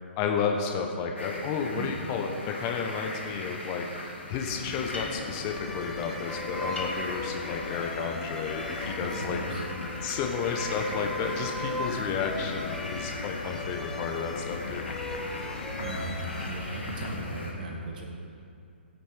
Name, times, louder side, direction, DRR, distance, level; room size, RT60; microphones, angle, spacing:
voice 1, 0.2-9.4 10.0-14.8, left 6 dB, 30° left, 2 dB, 1.0 m, -32 dB
sound 1, 1.2-17.5, left 1 dB, 80° left, 3.1 m, -40 dB
sound 2, 4.5-17.5, left 4 dB, 55° left, 1.2 m, -39 dB
sound 3, 5.2-16.5, left 1 dB, 5° left, 0.8 m, -39 dB
voice 2, 9.0-9.7 15.8-18.1, right 2 dB, 50° right, 1 dB, 1.6 m, -37 dB
16.0 x 8.6 x 4.7 m, 2.5 s
figure-of-eight pair, 120°, 6 cm